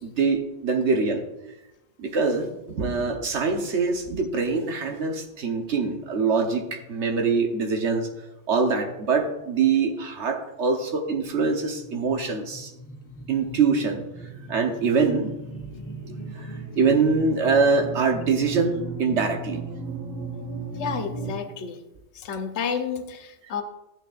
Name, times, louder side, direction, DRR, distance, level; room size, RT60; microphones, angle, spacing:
voice 1, 0.0-1.2 2.0-8.1 8.5-12.7 13.3-14.0 14.5-15.3 16.1-16.5 16.8-19.6, right 4 dB, 85° right, 3 dB, 1.3 m, -24 dB
sound 1, 11.6-21.3, right 3 dB, 15° left, 1.4 m, -37 dB
voice 2, 20.8-21.8 22.1-23.6, left 6 dB, 80° left, 7 dB, 1.1 m, -30 dB
14.0 x 9.1 x 2.5 m, 0.95 s
omnidirectional pair, 1.1 m